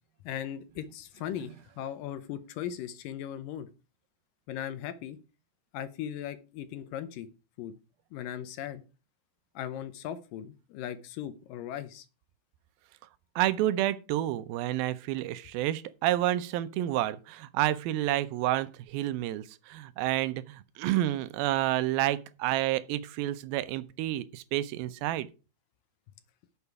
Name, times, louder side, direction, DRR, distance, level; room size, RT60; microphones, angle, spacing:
voice 1, 0.2-3.7 4.5-5.2 5.7-7.3 7.6-7.8 8.1-8.8 9.6-12.1, left 10 dB, 75° left, 2.3 m, -38 dB
voice 2, 13.4-25.3, right 14 dB, 85° right, 2.5 m, -29 dB
11.0 x 7.0 x 4.7 m
omnidirectional pair, 4.3 m